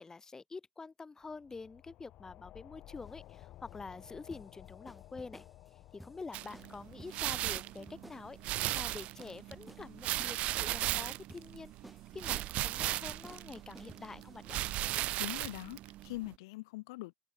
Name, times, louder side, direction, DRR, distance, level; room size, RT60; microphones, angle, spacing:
voice 1, 0.0-5.4 5.9-14.6, left 4 dB, 20° left, 6.6 m, -47 dB
sound 1, 1.2-12.4, left 14 dB, 55° left, 2.4 m, -57 dB
sound 2, 2.9-15.0, equal, ahead, 7.4 m, -56 dB
sound 3, 6.3-16.3, right 16 dB, 55° right, 1.1 m, -37 dB
voice 2, 15.2-17.1, left 21 dB, 70° left, 1.3 m, -42 dB
figure-of-eight pair, 65°, 3 cm